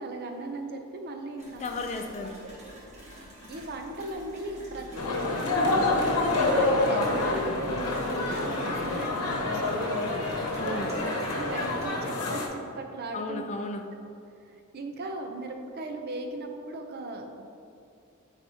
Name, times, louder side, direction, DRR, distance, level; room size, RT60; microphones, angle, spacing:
voice 1, 0.0-1.9 3.5-6.0 6.4-10.1 10.6-13.5 14.4-17.4, right 2 dB, 45° right, 4 dB, 0.5 m, -38 dB
sound 1, 1.4-11.9, equal, 30° right, 1.4 m, -47 dB
voice 2, 1.6-2.4 10.6-10.9 13.1-13.8, left 3 dB, 30° left, 5 dB, 0.3 m, -34 dB
sound 2, 5.0-12.5, left 2 dB, 85° left, 0.9 m, -27 dB
8.9 x 4.1 x 2.8 m, 2.6 s
head